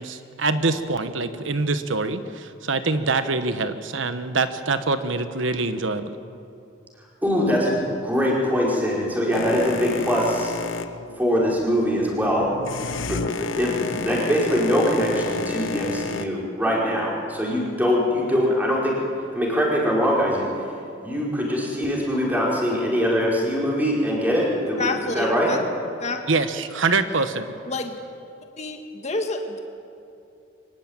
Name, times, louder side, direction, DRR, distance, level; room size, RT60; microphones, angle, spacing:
voice 1, 0.0-6.2 26.3-27.4, right 3 dB, 80° right, 10 dB, 1.3 m, -24 dB
voice 2, 7.2-10.6 11.2-12.5 12.9-19.0 19.3-20.7 21.0-24.9 25.1-25.5, equal, 10° right, -4 dB, 5.0 m, -23 dB
Boat Water vehicle, 9.3-16.3, left 4 dB, 85° left, 1.0 m, -31 dB
voice 3, 24.8-25.6 26.0-26.2 27.7-28.0 28.6-28.8 29.0-29.6, left 3 dB, 35° left, 4 dB, 1.7 m, -28 dB
24.0 x 19.0 x 9.0 m, 2.6 s
head